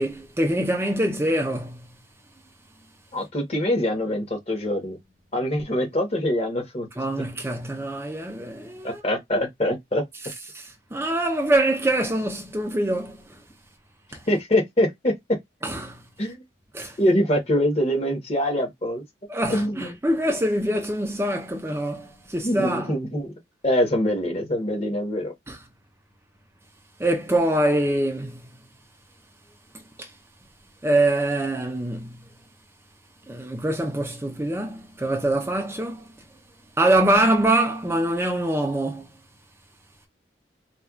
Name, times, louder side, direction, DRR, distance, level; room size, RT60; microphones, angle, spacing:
voice 1, 0.0-1.9 7.0-9.0 10.5-13.4 14.1-14.2 15.6-16.0 16.7-17.0 19.3-22.9 25.5-25.6 27.0-28.4 30.0-30.1 30.8-32.2 33.3-36.1 36.8-39.1, right 1 dB, 15° right, 0.5 m, -24 dB
voice 2, 3.1-5.0 5.3-6.9 8.8-10.0 14.3-15.1 16.2-16.4 17.0-19.0 19.5-19.9 22.4-23.3 23.6-25.3, left 1 dB, 35° left, 1.1 m, -24 dB
4.2 x 2.3 x 2.4 m
head